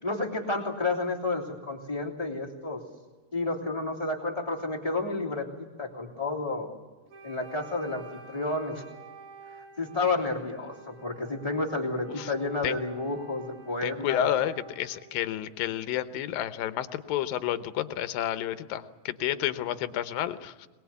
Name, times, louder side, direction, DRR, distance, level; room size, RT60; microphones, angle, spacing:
voice 1, 0.0-2.8 3.3-6.7 7.2-8.8 9.8-14.3, left 3 dB, 10° left, -3 dB, 2.7 m, -31 dB
Wind instrument woodwind instrument, 7.1-15.1, right 5 dB, 65° right, 4.2 m, -50 dB
voice 2, 13.8-20.7, left 12 dB, 75° left, 11 dB, 2.6 m, -30 dB
22.0 x 21.0 x 8.4 m, 1.3 s
omnidirectional pair, 4.4 m